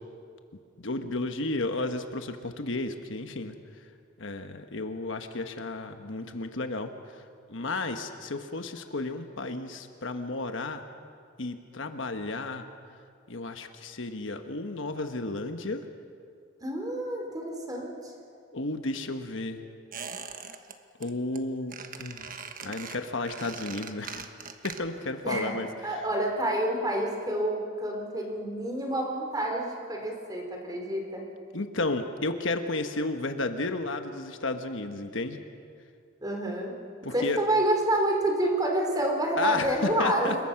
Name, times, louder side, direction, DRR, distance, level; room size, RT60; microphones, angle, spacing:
voice 1, 0.8-3.5 4.2-7.2 7.5-10.8 11.4-12.6 13.3-15.9 18.5-19.6 21.0-22.3 22.6-24.3 24.6-26.0 31.5-35.4 37.0-37.4 39.4-40.4, left 2 dB, 65° left, 7 dB, 1.3 m, -33 dB
voice 2, 16.6-18.1 25.2-25.5 25.8-31.2 36.2-36.7 37.1-40.3, right 1 dB, 20° right, 1 dB, 3.6 m, -28 dB
Squeak, 19.9-20.7 21.0-21.4 21.7-25.1 25.4-25.5, right 6 dB, 45° right, 1.2 m, -41 dB
27.5 x 22.0 x 5.9 m, 2.3 s
head